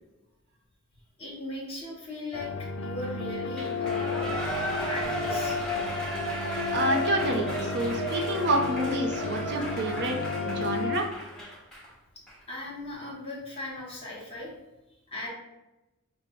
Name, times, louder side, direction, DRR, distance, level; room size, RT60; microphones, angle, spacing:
voice 1, 1.2-4.2 4.8-5.6 9.3-9.5 12.5-14.5 15.1-15.3, left 1 dB, 25° left, -3 dB, 1.1 m, -38 dB
sound 1, 2.3-11.0, left 5 dB, 60° left, 0.4 m, -32 dB
Shout / Cheering, 3.5-11.9 12.3-12.4, right 1 dB, 5° left, 1.0 m, -34 dB
voice 2, 6.7-11.1, right 2 dB, 50° right, 3 dB, 0.6 m, -28 dB
5.6 x 2.1 x 3.1 m, 0.97 s
head